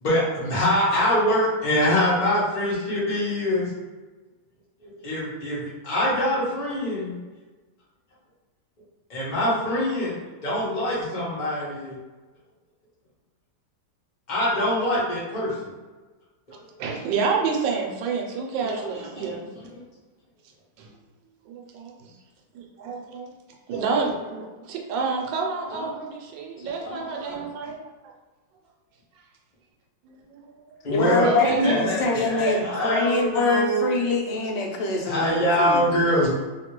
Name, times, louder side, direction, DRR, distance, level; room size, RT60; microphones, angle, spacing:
voice 1, 0.0-3.7 4.8-7.2 9.1-12.0 14.3-15.6 16.5-16.6 18.6-19.7 23.7-24.1 25.7-25.9 26.6-27.5 30.8-31.3 31.6-34.0 35.0-36.3, equal, 30° left, -7 dB, 0.9 m, -24 dB
voice 2, 16.5-19.5 20.8-20.9 21.5-22.1 22.5-23.3 23.7-27.9 30.1-30.2 31.2-31.8, right 4 dB, 80° right, 1 dB, 1.3 m, -28 dB
voice 3, 30.9-36.0, left 3 dB, 80° left, 0 dB, 1.3 m, -24 dB
2.9 x 2.8 x 2.9 m, 1.3 s
omnidirectional pair, 2.0 m